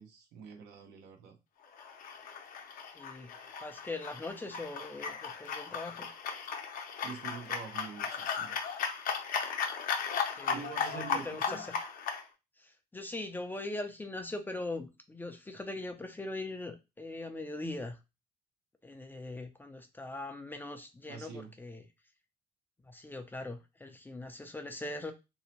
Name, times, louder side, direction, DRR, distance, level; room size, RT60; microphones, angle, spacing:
voice 1, 0.0-1.4 7.0-8.5 10.5-11.6 21.1-21.5, right 6 dB, 80° right, 5 dB, 0.7 m, -45 dB
sound 1, 1.7-12.2, left 6 dB, 55° left, 0.6 m, -36 dB
voice 2, 3.0-6.1 10.3-11.7 12.6-18.0 18.8-21.8 22.8-25.1, left 2 dB, 10° left, 6 dB, 0.4 m, -41 dB
2.7 x 2.0 x 2.8 m, 0.26 s
cardioid pair, 110°, 17 cm